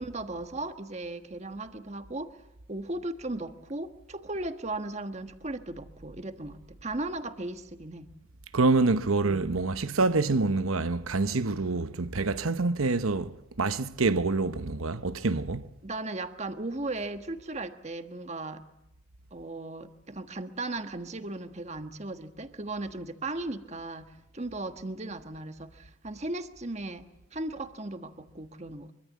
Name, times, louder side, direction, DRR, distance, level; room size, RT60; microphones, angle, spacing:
voice 1, 0.0-2.3 2.7-8.1 9.2-9.5 15.8-18.6 19.3-28.9, right 2 dB, 35° right, 1.4 m, -37 dB
voice 2, 8.5-15.7, right 3 dB, 90° right, 1.0 m, -26 dB
24.5 x 24.0 x 8.4 m
head